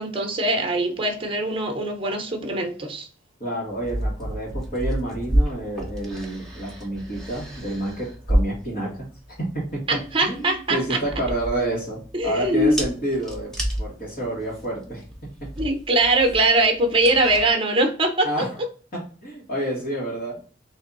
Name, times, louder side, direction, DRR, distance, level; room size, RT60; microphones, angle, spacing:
voice 1, 0.0-3.1 9.9-11.0 12.1-12.8 15.6-18.5, right 2 dB, 30° right, 4 dB, 0.9 m, -22 dB
voice 2, 3.4-9.1 9.4-15.0 15.4-15.5 18.2-18.6 18.9-20.4, right 1 dB, 50° left, -6 dB, 1.4 m, -29 dB
sound 1, 3.7-17.5, right 1 dB, 5° left, 0.8 m, -30 dB
3.6 x 2.6 x 4.0 m, 0.40 s
head